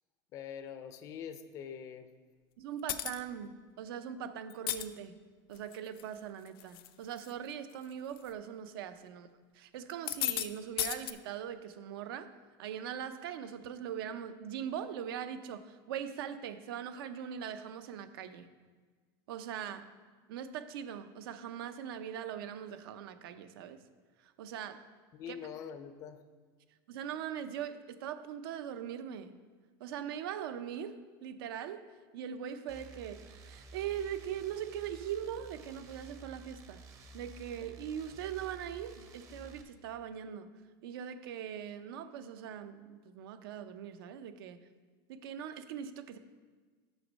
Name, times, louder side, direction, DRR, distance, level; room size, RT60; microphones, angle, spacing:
voice 1, 0.3-2.1 25.1-26.2, left 8 dB, 25° left, 10 dB, 0.3 m, -44 dB
voice 2, 2.6-5.2 5.5-9.3 9.5-12.3 12.6-18.5 19.3-19.9 20.3-23.8 24.2-24.8 25.3-25.4 26.9-29.3 29.8-31.9 32.1-36.8 37.1-40.5 40.8-44.6 45.1-46.2, right 9 dB, 90° right, 11 dB, 0.6 m, -41 dB
sound 1, 2.9-3.2 4.5-4.8 5.6-6.0 6.5-6.9 7.2-7.3 8.2-8.3 9.9-10.5 10.8-11.1, left 14 dB, 85° left, 0.4 m, -34 dB
sound 2, 32.7-39.6, right 4 dB, 25° right, 0.5 m, -52 dB
6.4 x 6.1 x 5.2 m, 1.4 s
supercardioid pair, 180°, 12 cm